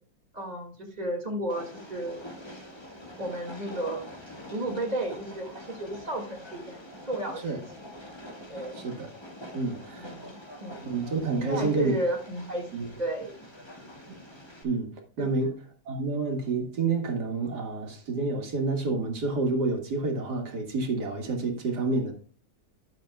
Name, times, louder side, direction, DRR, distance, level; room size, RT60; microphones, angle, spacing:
voice 1, 0.3-2.3 3.2-4.0 4.5-6.8 7.1-7.6 8.5-8.8 9.9-10.9 11.4-13.3 15.2-15.3, right 1 dB, 25° right, 2.1 m, -33 dB
Train, 1.5-14.6, equal, 15° left, 1.7 m, -45 dB
voice 2, 8.8-9.1 9.5-10.1 10.8-11.9 12.7-12.9 14.6-15.5 15.9-22.1, right 3 dB, 70° right, 2.2 m, -29 dB
12.5 x 7.4 x 2.3 m
omnidirectional pair, 1.8 m